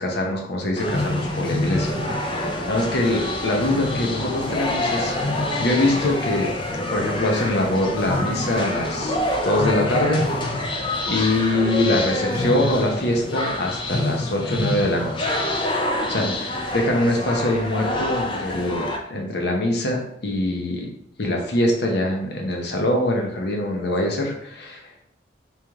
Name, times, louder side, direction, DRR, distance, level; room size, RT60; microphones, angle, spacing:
voice 1, 0.0-6.5 6.9-9.2 9.4-10.2 11.1-15.3 16.1-20.9 21.2-25.1, left 1 dB, 60° left, 1 dB, 0.8 m, -23 dB
sound 1, 0.8-19.0, left 1 dB, 25° left, 0.5 m, -26 dB
3.3 x 3.0 x 3.5 m, 0.69 s
head